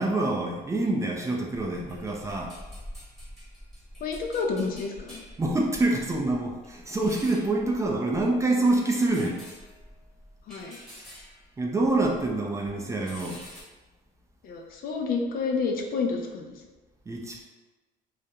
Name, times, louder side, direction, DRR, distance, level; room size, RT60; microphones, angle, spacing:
voice 1, 0.0-2.5 5.4-9.4 11.6-13.4 17.1-17.4, right 2 dB, 20° right, -1 dB, 0.3 m, -26 dB
sound 1, 1.6-12.4 12.6-13.6, equal, ahead, 0.9 m, -47 dB
voice 2, 4.0-5.2 10.5-10.8 14.4-16.5, left 4 dB, 60° left, 2 dB, 0.4 m, -29 dB
2.4 x 2.1 x 2.8 m, 1.2 s
cardioid pair, 110°, 17 cm